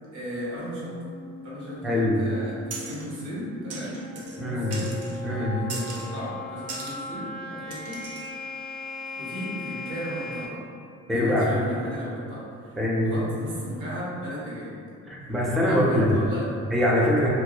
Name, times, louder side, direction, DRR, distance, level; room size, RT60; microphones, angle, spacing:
voice 1, 0.1-0.9 1.4-8.0 9.2-10.6 11.1-14.8 15.6-16.7, equal, 90° right, -7 dB, 0.9 m, -36 dB
sound 1, 0.8-10.5, left 3 dB, 65° left, 0.5 m, -39 dB
voice 2, 1.8-2.2 4.4-4.8 5.2-5.7 11.1-11.5 12.8-13.2 15.0-16.2 16.7-17.3, left 1 dB, ahead, -4 dB, 0.4 m, -23 dB
sound 2, 2.7-3.1 3.7-4.4 4.7-5.2 5.7-6.1 6.7-7.0 7.7-8.3, right 3 dB, 55° right, 0.5 m, -38 dB
2.2 x 2.1 x 2.8 m, 2.4 s
cardioid pair, 90°, 30 cm